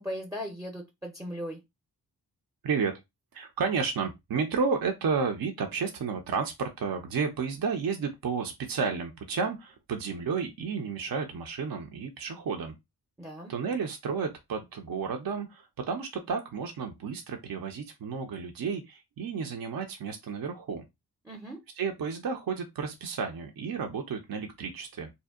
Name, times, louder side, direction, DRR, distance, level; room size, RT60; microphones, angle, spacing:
voice 1, 0.0-1.6 13.2-13.5 21.2-21.6, equal, 10° right, 0.6 m, -38 dB
voice 2, 3.3-12.8 13.5-20.8 21.8-25.1, right 5 dB, 55° right, 0.5 m, -32 dB
2.6 x 2.0 x 2.3 m
cardioid pair, 45°, 41 cm